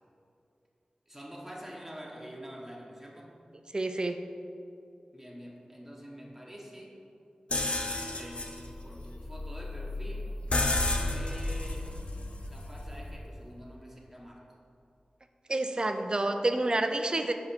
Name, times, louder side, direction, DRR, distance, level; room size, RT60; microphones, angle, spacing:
voice 1, 1.1-3.4 5.1-6.9 8.1-10.3 11.1-11.9 12.4-14.6, equal, 10° right, -3 dB, 1.2 m, -46 dB
voice 2, 3.7-4.2 15.5-17.3, right 2 dB, 40° right, 7 dB, 0.5 m, -28 dB
sound 1, 7.5-13.3, left 2 dB, 55° left, 0.6 m, -32 dB
6.1 x 5.0 x 4.3 m, 2.7 s
wide cardioid pair, 55°, 2 cm